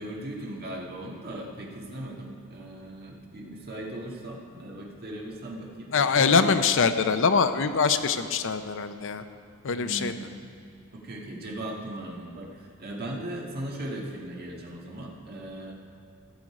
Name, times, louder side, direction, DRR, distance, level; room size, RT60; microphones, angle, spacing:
voice 1, 0.0-6.5 9.7-10.5 10.9-15.7, right 1 dB, 45° right, -1 dB, 1.7 m, -38 dB
voice 2, 5.9-9.2 9.6-10.1, left 5 dB, 65° left, 9 dB, 0.6 m, -23 dB
15.0 x 7.8 x 4.8 m, 2.5 s
head